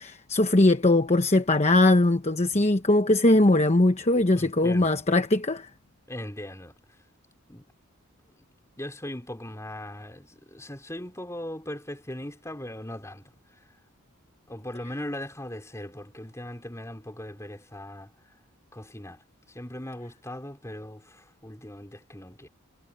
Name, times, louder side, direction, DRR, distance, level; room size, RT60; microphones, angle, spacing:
voice 1, 0.0-5.7, left 2 dB, 30° left, 1.0 m, -21 dB
voice 2, 4.3-4.9 6.1-6.7 7.5-7.7 8.4-8.5 8.8-13.3 14.5-18.1 18.7-19.2 19.5-22.5, left 1 dB, 15° left, 4.3 m, -39 dB
head